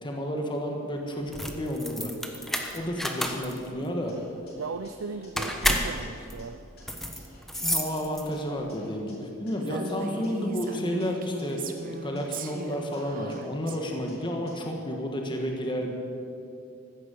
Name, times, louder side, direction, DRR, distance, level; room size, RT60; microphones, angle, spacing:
voice 1, 0.0-2.1 2.7-4.2 7.6-15.9, equal, 25° left, 2 dB, 1.4 m, -31 dB
sound 1, 1.2-8.6, equal, ahead, 1.1 m, -31 dB
sound 2, 4.1-6.4 6.8-9.1 9.5-11.8 12.2-14.5, left 1 dB, 55° left, 4.1 m, -54 dB
voice 2, 4.6-6.6, right 5 dB, 85° right, 10 dB, 0.5 m, -37 dB
Female speech woman speaking, 9.6-13.8, right 3 dB, 45° right, 0.9 m, -38 dB
15.0 x 10.5 x 7.6 m, 2.7 s
head